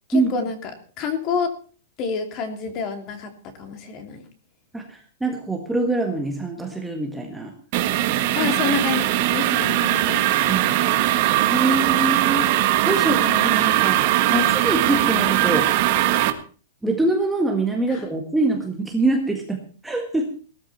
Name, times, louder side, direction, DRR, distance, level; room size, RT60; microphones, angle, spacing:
voice 1, 0.1-0.7 1.0-1.5 2.0-3.3 3.6-4.2 8.3-9.0 9.3-10.2 17.9-18.1, left 5 dB, 25° left, 6 dB, 2.9 m, -27 dB
voice 2, 4.7-7.5 8.4-8.5 10.5-10.8 11.5-15.7 16.8-20.3, right 2 dB, 5° right, 1 dB, 1.7 m, -24 dB
sound 1, 7.7-16.3, right 14 dB, 40° right, 1.7 m, -20 dB
18.0 x 13.5 x 4.3 m, 0.40 s
supercardioid pair, 175°, 0 cm